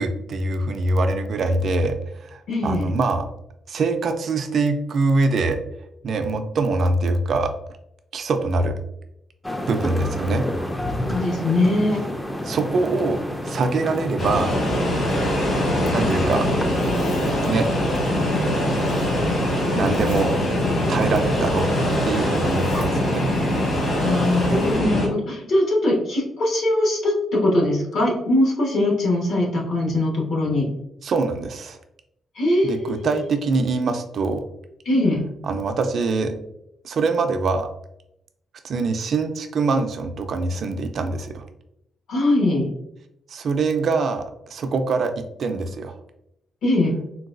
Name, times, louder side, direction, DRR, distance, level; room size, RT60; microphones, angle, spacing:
voice 1, 0.0-3.3 3.7-5.6 6.0-7.5 8.1-8.7 9.7-10.5 12.4-14.6 15.9-16.4 17.4-17.7 19.7-20.3 20.9-21.7 22.0-23.3 31.0-31.8 32.6-34.5 35.4-36.3 36.8-37.7 38.6-41.4 43.3-45.1 45.4-46.0, right 3 dB, 60° right, 7 dB, 0.4 m, -23 dB
voice 2, 2.5-2.9 11.0-12.0 24.0-30.7 32.3-33.1 34.8-35.2 42.1-42.7 46.6-46.9, left 1 dB, 70° left, -2 dB, 1.2 m, -21 dB
sound 1, 9.4-24.8, left 1 dB, 10° left, 0.4 m, -30 dB
sound 2, 14.2-25.1, left 1 dB, 55° left, 1.4 m, -23 dB
Zipper (clothing), 15.0-15.9 16.4-17.5 18.8-19.2 19.8-20.4 21.7-22.0 22.4-22.8, left 1 dB, 85° left, 0.8 m, -38 dB
3.9 x 2.2 x 2.5 m, 0.79 s
cardioid pair, 115°, 0 cm